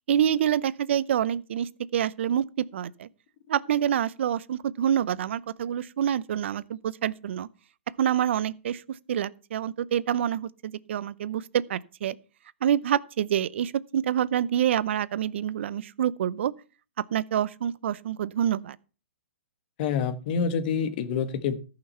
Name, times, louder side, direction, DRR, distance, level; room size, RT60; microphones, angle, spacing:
voice 1, 0.1-3.1 3.5-7.5 8.0-12.2 12.6-16.5 17.1-18.8, right 10 dB, 60° right, 0.6 m, -27 dB
voice 2, 19.8-21.6, left 6 dB, 40° left, 1.4 m, -27 dB
14.0 x 5.9 x 5.5 m
hypercardioid pair, 150°, 7 cm